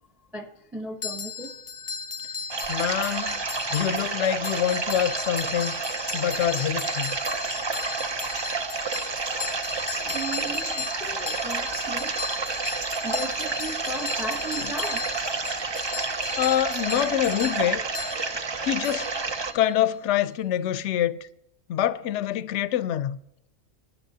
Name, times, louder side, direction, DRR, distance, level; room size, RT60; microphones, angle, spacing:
voice 1, 0.3-1.6 9.9-12.2 13.0-15.1, right 1 dB, ahead, 0.6 m, -36 dB
sound 1, 1.0-19.8, left 6 dB, 50° left, 0.4 m, -36 dB
sound 2, 2.5-19.5, right 4 dB, 40° right, 0.3 m, -30 dB
voice 2, 2.7-3.4 3.7-5.7 6.1-7.2 14.6-14.7 16.4-17.8 18.6-19.1 19.5-21.2 21.7-23.2, left 11 dB, 70° left, 0.8 m, -25 dB
sound 3, 5.9-15.9, right 3 dB, 65° right, 1.8 m, -48 dB
22.0 x 11.0 x 2.7 m
omnidirectional pair, 1.3 m